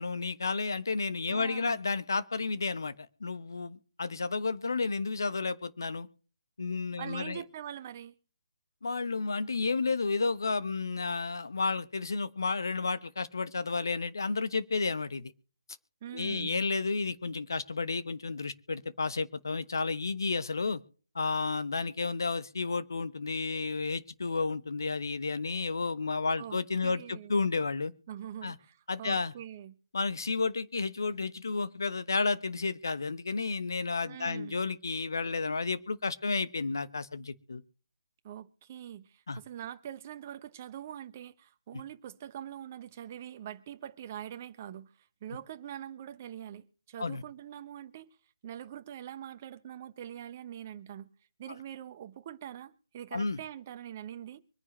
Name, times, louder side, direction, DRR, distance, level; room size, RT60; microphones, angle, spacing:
voice 1, 0.0-6.1 6.6-7.4 8.8-15.3 16.1-20.8 21.1-27.9 28.4-28.6 28.9-29.3 29.9-37.6 39.3-39.4 47.0-47.2 53.1-53.4, left 4 dB, 60° left, 1.1 m, -32 dB
voice 2, 1.3-1.8 7.0-8.1 16.0-16.6 26.4-27.3 28.1-29.7 34.0-34.6 38.2-44.9 45.2-48.1 48.4-51.1 51.4-54.4, right 10 dB, 30° right, 1.0 m, -43 dB
24.5 x 9.7 x 3.3 m
figure-of-eight pair, 145°, 2 cm